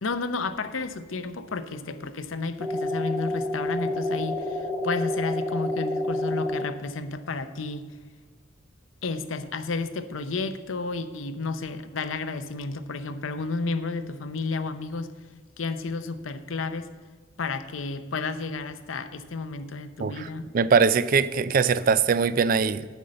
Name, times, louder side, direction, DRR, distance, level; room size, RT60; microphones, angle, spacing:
voice 1, 0.0-7.9 9.0-15.1 15.6-16.9 17.4-20.5, left 3 dB, 85° left, 10 dB, 0.7 m, -32 dB
sound 1, 2.6-6.6, left 1 dB, 15° right, 1.3 m, -29 dB
voice 2, 20.5-22.9, right 5 dB, 45° right, 16 dB, 0.4 m, -21 dB
10.5 x 5.5 x 7.6 m, 1.3 s
head